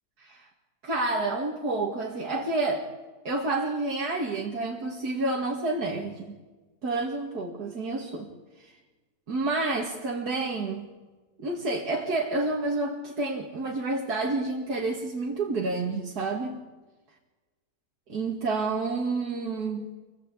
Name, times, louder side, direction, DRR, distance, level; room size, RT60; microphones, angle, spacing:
voice 1, 0.8-2.9 3.2-6.4 6.8-8.3 8.6-8.7 9.3-10.9 11.4-16.6 18.1-20.0, right 2 dB, 90° right, -1 dB, 2.6 m, -29 dB
27.0 x 18.5 x 8.6 m, 1.2 s
omnidirectional pair, 1.6 m